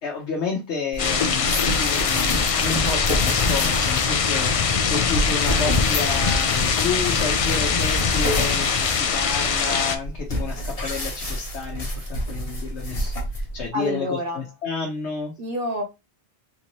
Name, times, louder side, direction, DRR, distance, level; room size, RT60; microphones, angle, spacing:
voice 1, 0.0-15.3, left 5 dB, 85° left, 1.0 m, -30 dB
sound 1, 0.9-13.7, equal, 35° left, 0.9 m, -29 dB
sound 2, 1.0-10.0, left 5 dB, 60° left, 0.3 m, -22 dB
voice 2, 13.7-14.4 15.4-15.8, equal, 60° right, 1.1 m, -28 dB
3.6 x 2.7 x 3.0 m
omnidirectional pair, 1.1 m